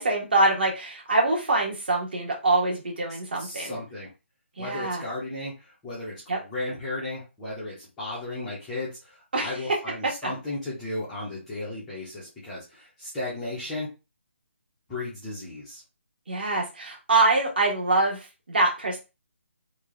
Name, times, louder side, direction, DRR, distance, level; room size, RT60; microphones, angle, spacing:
voice 1, 0.0-3.8 4.6-5.0 6.3-6.4 9.3-9.8 10.2-10.3 16.3-19.0, right 2 dB, 45° right, -1 dB, 1.4 m, -24 dB
voice 2, 3.4-4.1 4.6-13.9 14.9-15.8, left 2 dB, 5° left, -11 dB, 0.4 m, -35 dB
3.2 x 2.3 x 3.4 m, 0.28 s
hypercardioid pair, 180°, 7 cm